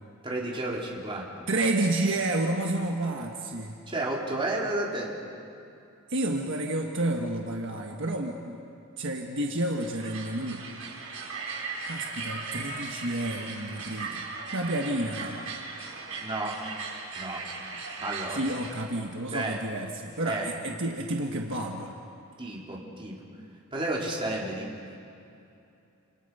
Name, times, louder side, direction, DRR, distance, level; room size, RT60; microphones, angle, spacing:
voice 1, 0.2-1.3 3.9-5.2 16.2-16.6 17.1-17.5 18.0-18.4 19.3-19.6 20.3-20.5 22.4-23.2 23.7-24.7, right 2 dB, 25° right, -3 dB, 3.8 m, -31 dB
voice 2, 1.5-3.8 6.1-8.6 9.0-10.7 11.9-14.3 14.5-15.4 18.3-21.9, right 1 dB, 60° right, 1 dB, 1.5 m, -30 dB
sound 1, 9.8-18.7, right 4 dB, 85° right, 5.0 m, -38 dB
29.0 x 27.5 x 5.7 m, 2.7 s
head